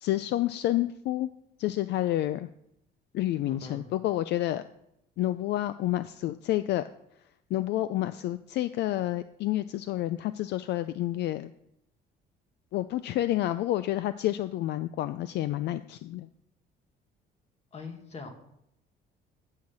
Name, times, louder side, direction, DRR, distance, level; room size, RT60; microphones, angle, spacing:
voice 1, 0.0-1.3 1.6-2.5 3.1-4.6 5.2-6.9 7.5-11.5 12.7-16.3, left 14 dB, 65° left, 13 dB, 0.4 m, -29 dB
voice 2, 3.4-3.8 17.7-18.3, left 4 dB, 35° left, 4 dB, 1.8 m, -41 dB
10.5 x 5.8 x 7.4 m, 0.80 s
cardioid pair, 145°, 19 cm